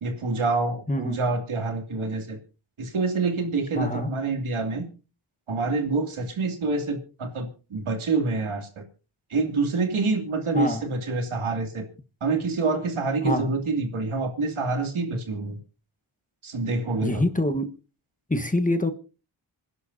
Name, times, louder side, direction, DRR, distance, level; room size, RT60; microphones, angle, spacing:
voice 1, 0.0-2.4 2.8-4.9 5.5-8.8 9.3-11.9 12.2-15.6 16.4-17.2, right 3 dB, 85° right, 2.8 m, -27 dB
voice 2, 0.9-1.2 3.7-4.1 10.5-10.8 13.2-13.5 17.0-17.7 18.3-18.9, left 1 dB, 15° left, 1.3 m, -25 dB
26.0 x 11.0 x 2.7 m
wide cardioid pair, 75°, 48 cm